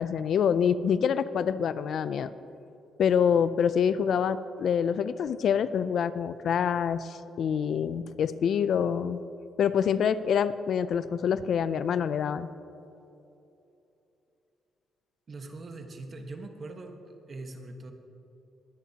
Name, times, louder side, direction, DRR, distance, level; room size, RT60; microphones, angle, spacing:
voice 1, 0.0-2.3 3.0-9.2 9.6-12.5, left 7 dB, 65° left, 14 dB, 0.4 m, -26 dB
voice 2, 15.3-17.0 17.3-17.9, right 2 dB, 40° right, 5 dB, 1.4 m, -41 dB
22.0 x 10.0 x 2.9 m, 2.9 s
cardioid pair, 90°, 0 cm